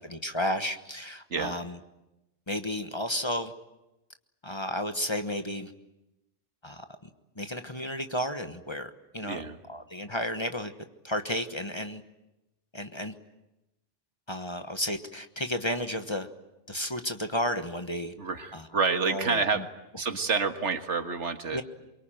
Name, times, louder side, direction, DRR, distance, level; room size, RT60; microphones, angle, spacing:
voice 1, 0.0-1.8 2.5-3.5 4.4-5.7 6.6-6.8 7.4-9.4 9.7-10.7 11.0-12.0 12.7-13.1 14.3-16.3 16.7-18.1 18.5-18.7 19.0-19.6 21.5-21.6, left 1 dB, 25° left, 7 dB, 1.2 m, -32 dB
voice 2, 9.2-9.6 18.2-19.7 20.0-21.6, right 4 dB, 75° right, 7 dB, 1.9 m, -28 dB
23.5 x 23.5 x 9.1 m, 0.97 s
omnidirectional pair, 1.2 m